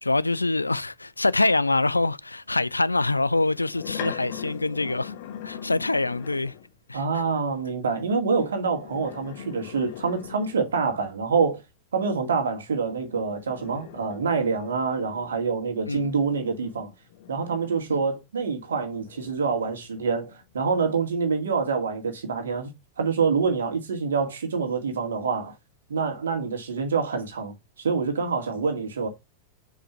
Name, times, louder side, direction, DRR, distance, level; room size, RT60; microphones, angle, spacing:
voice 1, 0.0-5.1 5.4-6.5 6.9-7.0 15.9-16.1 17.9-18.0, left 2 dB, 80° left, 0.3 m, -25 dB
sound 1, 3.4-6.7 8.6-11.0 12.9-18.1 18.7-20.4, left 10 dB, 50° left, 1.0 m, -42 dB
voice 2, 6.9-11.6 11.9-16.9 17.3-22.7 23.0-25.5 25.9-29.1, right 5 dB, 65° right, 2.1 m, -26 dB
5.3 x 4.9 x 5.8 m
figure-of-eight pair, 90°, 0 cm